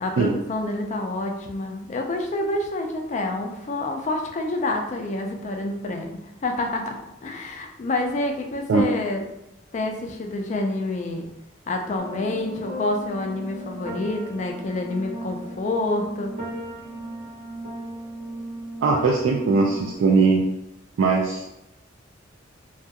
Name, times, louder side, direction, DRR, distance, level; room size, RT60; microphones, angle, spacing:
voice 1, 0.0-9.2 9.7-11.3 11.7-16.3, left 2 dB, 40° left, 3 dB, 0.3 m, -28 dB
sound 1, 12.0-20.0, right 1 dB, 40° right, 0.9 m, -36 dB
voice 2, 18.8-20.4 21.0-21.6, right 4 dB, 85° right, -1 dB, 0.3 m, -20 dB
2.8 x 2.3 x 2.2 m, 0.87 s
head